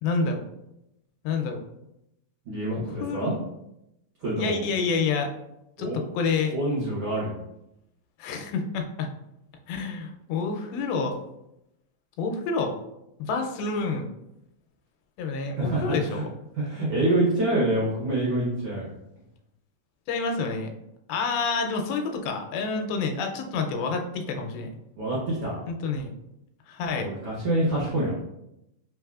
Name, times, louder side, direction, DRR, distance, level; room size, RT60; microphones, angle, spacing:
voice 1, 0.0-0.4 1.2-1.6 2.8-3.4 4.4-5.3 5.8-6.5 8.2-9.1 9.7-11.2 12.2-12.7 13.2-14.1 15.2-16.3 20.1-20.7 21.1-24.7 25.7-26.1 26.7-27.1, left 4 dB, 85° left, 4 dB, 2.4 m, -28 dB
voice 2, 2.4-3.3 4.2-4.6 5.8-6.0 6.5-7.3 15.6-16.2 16.5-18.9 25.0-25.6 26.9-28.1, right 1 dB, 80° right, -7 dB, 1.3 m, -26 dB
5.3 x 3.2 x 2.4 m, 0.86 s
omnidirectional pair, 4.2 m